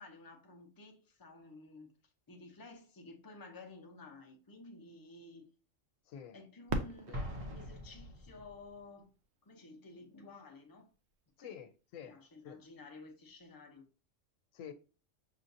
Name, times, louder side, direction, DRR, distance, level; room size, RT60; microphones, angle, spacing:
voice 1, 0.0-1.9 2.3-5.5 6.3-7.2 7.5-9.1 9.4-10.9 11.4-11.5 12.0-13.8, left 3 dB, 20° left, 0.7 m, -53 dB
Fireworks, 6.7-9.4 10.1-10.2 10.9-11.4 13.3-13.4, right 2 dB, 65° right, 0.9 m, -42 dB
Explosion, 7.1-8.7, equal, 30° right, 0.8 m, -43 dB
voice 2, 11.4-12.2 12.4-12.6 14.5-14.7, left 8 dB, 90° left, 1.0 m, -48 dB
6.3 x 2.5 x 2.6 m
omnidirectional pair, 1.3 m